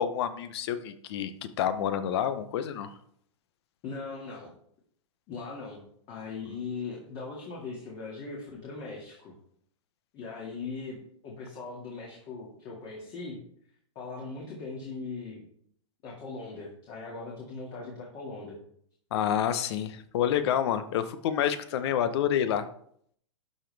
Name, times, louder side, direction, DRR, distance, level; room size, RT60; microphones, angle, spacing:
voice 1, 0.0-2.9 6.5-6.6 19.1-22.7, left 9 dB, 55° left, 11 dB, 0.9 m, -28 dB
voice 2, 3.8-4.5 5.3-9.3 10.1-13.4 14.0-15.4 16.0-18.6, left 4 dB, 35° left, -2 dB, 2.1 m, -39 dB
12.0 x 5.2 x 3.4 m, 0.65 s
hypercardioid pair, 140°, 17 cm